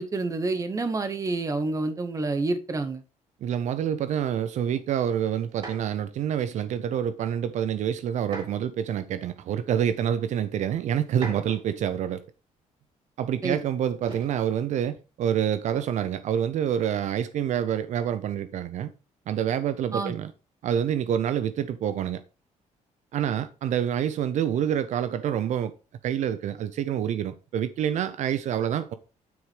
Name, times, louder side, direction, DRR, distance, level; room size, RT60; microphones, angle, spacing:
voice 1, 0.0-3.0 13.4-13.6 19.9-20.1, right 3 dB, 25° right, 1.1 m, -28 dB
voice 2, 3.4-12.2 13.2-18.9 19.3-20.3 20.6-22.2 23.1-25.7 26.0-28.9, right 9 dB, 65° right, 0.7 m, -27 dB
sound 1, 5.5-6.1 8.2-8.7 9.7-9.8 11.1-11.8 14.1-14.4 15.6-16.0, right 3 dB, 40° right, 3.4 m, -41 dB
9.5 x 4.8 x 5.1 m
cardioid pair, 130°, 13 cm